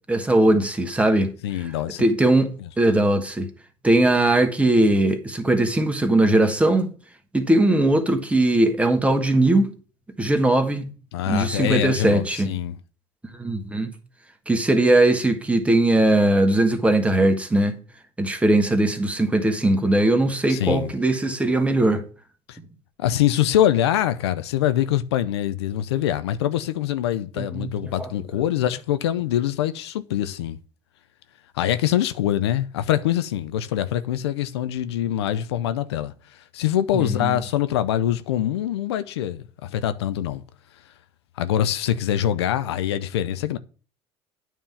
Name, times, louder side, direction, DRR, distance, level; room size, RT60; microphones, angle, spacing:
voice 1, 0.1-1.3 1.6-1.7 2.0-3.5 3.8-6.9 7.3-9.7 10.2-10.9 11.3-12.5 13.4-13.9 14.5-17.8 18.2-22.0 27.4-28.1 36.9-37.4, right 1 dB, 10° right, 1.4 m, -20 dB
voice 2, 1.4-2.1 11.1-12.8 20.5-20.9 22.5-22.6 23.0-30.6 31.5-36.1 36.5-40.4 41.4-43.6, left 11 dB, 80° left, 0.5 m, -24 dB
8.9 x 3.6 x 6.8 m
hypercardioid pair, 75°, 14 cm